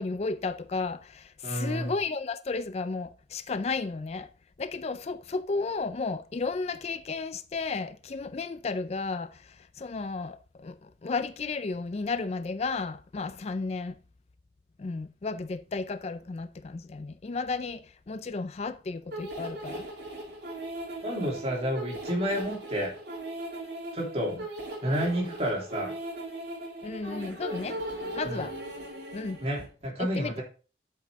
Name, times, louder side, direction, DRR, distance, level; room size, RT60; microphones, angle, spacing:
voice 1, 0.0-4.3 4.6-9.4 9.8-10.8 11.0-13.9 14.8-19.8 26.8-27.8 28.1-28.5 29.1-29.4 30.0-30.4, left 4 dB, 35° left, 0.4 m, -33 dB
voice 2, 1.4-1.9 21.0-22.9 23.9-24.3 24.8-25.9 28.2-28.5 29.4-30.4, equal, 35° right, 3.1 m, -30 dB
sound 1, 19.1-29.7, right 1 dB, 70° right, 3.5 m, -38 dB
8.5 x 6.7 x 3.6 m
head